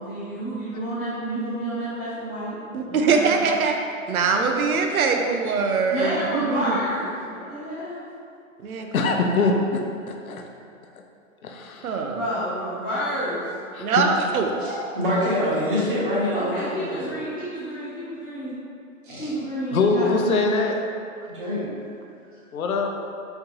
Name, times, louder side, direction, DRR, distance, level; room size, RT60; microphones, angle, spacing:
voice 1, 0.0-2.6 2.8-3.5 5.9-8.0 12.0-13.4 16.3-18.5 19.2-20.5, equal, 5° left, -20 dB, 0.6 m, -30 dB
voice 2, 2.7-3.8 4.1-6.8 8.6-9.3 11.8-12.2 13.8-14.5, right 5 dB, 90° right, 3 dB, 0.7 m, -23 dB
voice 3, 8.9-9.8 10.2-10.4 11.4-11.9 13.7-13.9 19.7-20.8 22.5-22.9, left 3 dB, 80° left, 2 dB, 0.7 m, -22 dB
voice 4, 14.6-17.2 19.0-19.3 21.3-21.7, equal, 40° right, -7 dB, 1.2 m, -25 dB
4.4 x 3.9 x 2.8 m, 2.4 s
hypercardioid pair, 165°, 42 cm